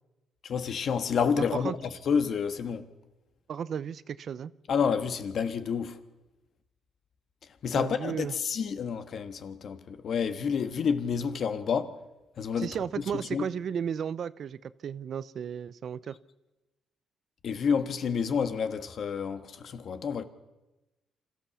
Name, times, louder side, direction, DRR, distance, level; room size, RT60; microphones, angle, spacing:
voice 1, 0.4-2.9 4.7-6.0 7.6-12.0 12.4-12.8 13.1-13.5 17.4-20.2, left 6 dB, 60° left, 1.4 m, -29 dB
voice 2, 1.4-1.7 3.5-4.5 7.7-8.3 12.6-16.2, right 8 dB, 60° right, 0.6 m, -34 dB
26.5 x 14.5 x 7.1 m
cardioid pair, 90°, 0 cm